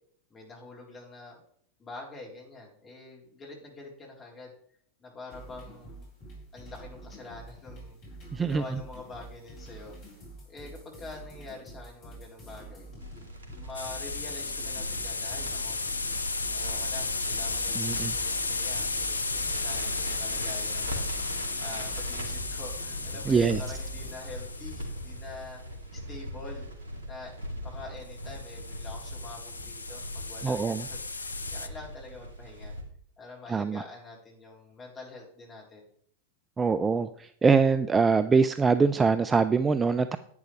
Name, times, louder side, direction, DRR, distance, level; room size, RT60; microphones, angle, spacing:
voice 1, 0.3-1.4 1.8-4.5 5.0-5.9 6.5-8.0 8.3-10.0 10.5-12.9 13.6-15.8 16.5-21.0 21.6-25.6 25.9-26.7 27.1-27.3 27.6-32.7 33.2-35.9, left 3 dB, 20° left, -2 dB, 3.8 m, -45 dB
sound 1, 5.3-24.1, right 1 dB, 35° left, 4.1 m, -47 dB
voice 2, 8.3-8.6 17.8-18.1 23.3-23.6 30.4-30.8 33.5-33.8 36.6-40.2, right 5 dB, 15° right, 12 dB, 0.4 m, -23 dB
Crackle, 13.0-32.8, equal, 65° right, 2.6 m, -40 dB
sound 2, 13.7-25.2 28.1-31.7, left 3 dB, 80° left, 0.5 m, -34 dB
10.5 x 9.4 x 3.3 m, 0.62 s
figure-of-eight pair, 90°, 0 cm